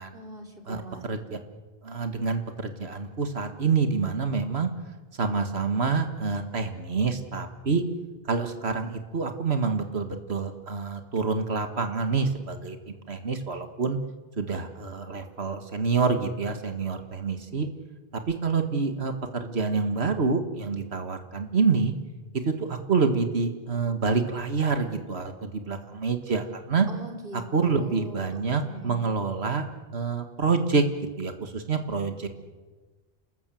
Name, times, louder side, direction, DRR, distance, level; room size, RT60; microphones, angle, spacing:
voice 1, 0.1-1.0 26.9-29.0, right 1 dB, 65° right, 3 dB, 3.8 m, -41 dB
voice 2, 0.7-1.4 1.8-4.7 5.2-7.8 8.3-14.0 14.4-17.7 18.3-21.9 22.5-26.9 27.5-29.7 29.9-30.8 31.2-32.3, right 4 dB, 85° right, 7 dB, 2.0 m, -27 dB
28.0 x 20.5 x 7.7 m, 1.3 s
omnidirectional pair, 1.0 m